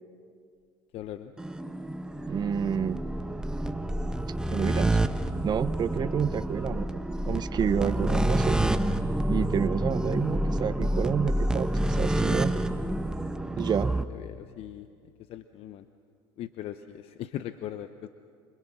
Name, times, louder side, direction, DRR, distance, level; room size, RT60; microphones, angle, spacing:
voice 1, 0.9-1.3 14.1-14.9 15.3-15.9 16.4-18.1, left 11 dB, 60° left, 10 dB, 0.9 m, -39 dB
sound 1, 1.4-14.0, right 1 dB, 5° right, 1.1 m, -28 dB
voice 2, 2.3-3.0 4.5-5.0 5.4-6.9 7.3-8.6 9.3-12.6 13.6-13.9, right 8 dB, 40° right, 14 dB, 0.7 m, -29 dB
29.0 x 26.0 x 6.1 m, 2.3 s
supercardioid pair, 80°, 11 cm